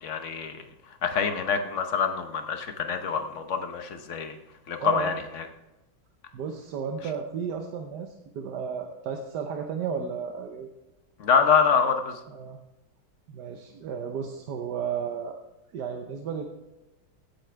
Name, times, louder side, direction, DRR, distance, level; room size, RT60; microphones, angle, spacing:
voice 1, 0.0-0.5 1.0-4.3 4.7-5.4 11.2-12.2, left 6 dB, 50° left, 7 dB, 1.0 m, -25 dB
voice 2, 4.8-5.2 6.3-10.7 12.3-12.6 13.3-15.4 15.7-16.5, right 6 dB, 65° right, 4 dB, 1.3 m, -33 dB
16.0 x 8.6 x 3.4 m, 0.99 s
omnidirectional pair, 2.2 m